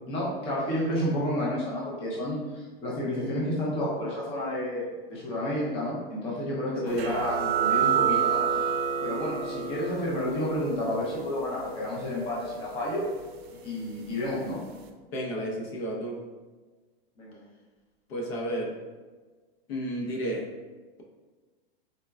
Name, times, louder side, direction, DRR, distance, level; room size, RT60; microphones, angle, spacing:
voice 1, 0.1-2.4 2.8-8.4 9.0-13.0 13.6-14.6 17.2-17.4, left 1 dB, 20° left, -5 dB, 0.5 m, -30 dB
voice 2, 6.8-7.2 15.1-16.2 18.1-18.8 19.7-20.5, right 1 dB, 80° left, -2 dB, 0.9 m, -32 dB
sound 1, 7.0-14.2, right 7 dB, 85° right, 0.5 m, -30 dB
3.8 x 2.2 x 2.2 m, 1.4 s
supercardioid pair, 160°, 30 cm